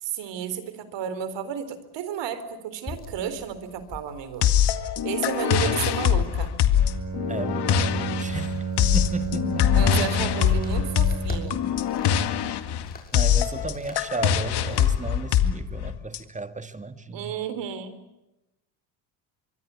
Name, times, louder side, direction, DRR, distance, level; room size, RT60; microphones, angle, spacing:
voice 1, 0.0-4.4 5.0-6.6 9.7-11.7 17.1-18.0, right 8 dB, 70° right, 3.9 m, -32 dB
sound 1, 2.9-15.0, left 2 dB, 20° left, 6.1 m, -43 dB
sound 2, 4.4-16.2, left 9 dB, 60° left, 2.1 m, -23 dB
Bowed string instrument, 6.7-11.8, right 6 dB, 40° right, 6.7 m, -32 dB
voice 2, 7.3-8.6 8.9-9.7 13.1-17.3, right 3 dB, 15° right, 1.8 m, -33 dB
24.5 x 23.5 x 8.3 m
cardioid pair, 110°, 45 cm